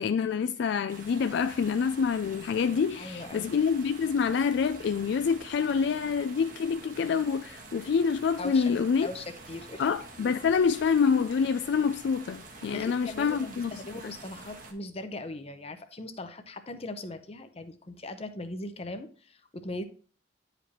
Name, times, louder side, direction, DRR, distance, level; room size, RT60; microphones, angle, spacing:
voice 1, 0.0-9.1 9.8-13.7, left 6 dB, 65° left, 0.3 m, -27 dB
sound 1, 0.9-14.7, right 3 dB, 50° right, 1.3 m, -47 dB
voice 2, 3.0-3.5 8.4-8.6 9.0-9.8 12.7-19.8, left 2 dB, 35° left, 0.8 m, -39 dB
9.8 x 5.0 x 2.9 m
head